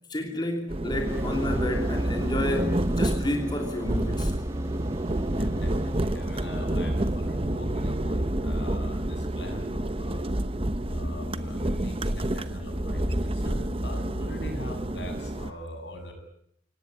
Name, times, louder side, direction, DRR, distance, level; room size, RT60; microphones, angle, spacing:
voice 1, 0.1-4.4, left 1 dB, 25° left, 3 dB, 3.2 m, -31 dB
sound 1, 0.7-15.5, right 1 dB, 30° right, 1.1 m, -29 dB
sound 2, 1.0-8.7, equal, 15° right, 1.6 m, -39 dB
voice 2, 5.3-10.4 10.9-16.1, equal, 75° left, 5 dB, 8.0 m, -39 dB
27.5 x 18.0 x 9.5 m, 0.71 s
head